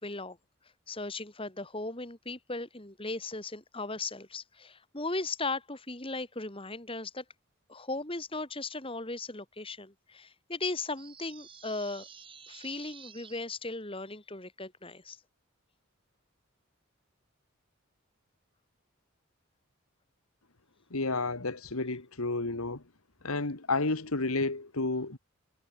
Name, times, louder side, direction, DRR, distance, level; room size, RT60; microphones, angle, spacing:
voice 1, 0.0-0.4 0.9-7.2 7.7-12.1 12.5-15.2, left 3 dB, 25° left, 2.8 m, -37 dB
sound 1, 11.0-13.4, right 7 dB, 25° right, 4.9 m, -51 dB
voice 2, 20.9-22.8 23.2-25.2, left 3 dB, 85° left, 2.0 m, -31 dB
head